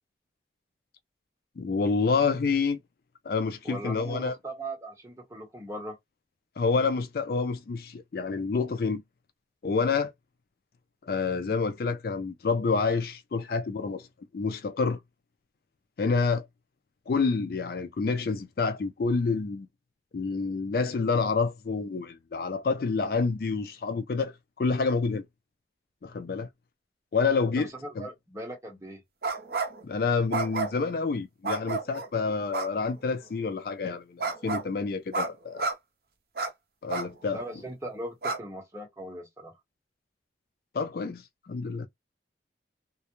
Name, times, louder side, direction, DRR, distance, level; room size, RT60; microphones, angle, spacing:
voice 1, 1.6-2.8 3.3-4.4 6.6-9.0 9.6-10.1 11.1-14.1 14.3-15.0 16.0-16.5 17.1-19.7 20.1-25.3 26.0-26.5 27.1-27.7 28.0-28.1 29.8-35.7 36.8-37.4 40.7-41.2 41.5-41.9, left 4 dB, 55° left, 0.4 m, -28 dB
voice 2, 3.6-6.0 27.6-29.0 37.3-39.5, right 1 dB, 15° right, 0.9 m, -39 dB
sound 1, 29.2-29.8 30.3-30.9 31.4-32.1 32.5-32.7 34.2-34.7 35.1-35.3 35.6-35.7 36.4-36.5 36.9-37.1 37.6-37.7 38.2-38.4, right 4 dB, 55° right, 0.5 m, -30 dB
2.3 x 2.1 x 2.9 m
head